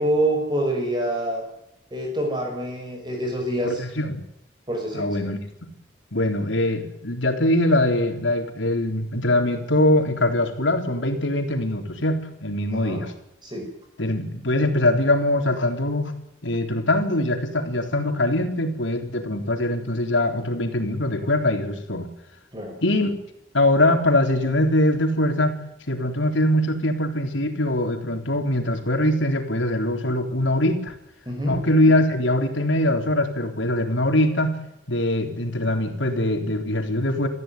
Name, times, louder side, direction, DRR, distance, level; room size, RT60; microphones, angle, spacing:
voice 1, 0.0-1.4 1.9-3.8 4.7-5.3 12.7-13.0 13.4-13.7 22.5-22.7 31.3-31.6, right 1 dB, 25° right, 2 dB, 5.8 m, -26 dB
voice 2, 3.6-4.2 4.9-5.4 6.1-13.1 14.0-16.1 16.4-22.1 22.8-23.1 23.5-25.6 25.9-30.9 31.5-34.6 34.9-37.3, left 1 dB, 85° left, 5 dB, 3.9 m, -22 dB
23.5 x 15.5 x 9.2 m, 0.83 s
head